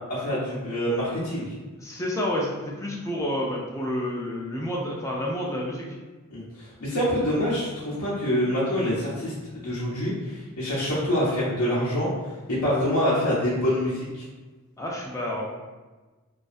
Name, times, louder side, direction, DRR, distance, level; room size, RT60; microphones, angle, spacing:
voice 1, 0.1-1.5 6.3-12.1 12.5-14.2, equal, 80° left, -9 dB, 0.6 m, -26 dB
voice 2, 1.8-5.9 14.8-15.4, left 1 dB, 15° left, -3 dB, 0.3 m, -29 dB
2.4 x 2.3 x 2.5 m, 1.3 s
head